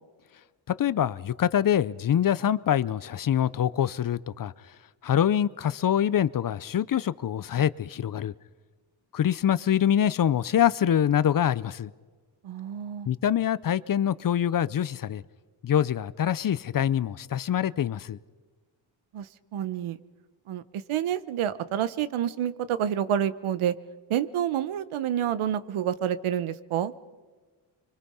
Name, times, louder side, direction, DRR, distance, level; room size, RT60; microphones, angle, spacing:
voice 1, 0.7-4.5 5.0-8.3 9.1-11.9 13.1-15.2 15.6-18.2, left 10 dB, 45° left, 0.6 m, -25 dB
voice 2, 12.4-13.1 19.1-20.0 20.5-23.7 24.1-26.9, right 10 dB, 85° right, 1.1 m, -28 dB
26.5 x 24.0 x 5.6 m
cardioid pair, 110°, 48 cm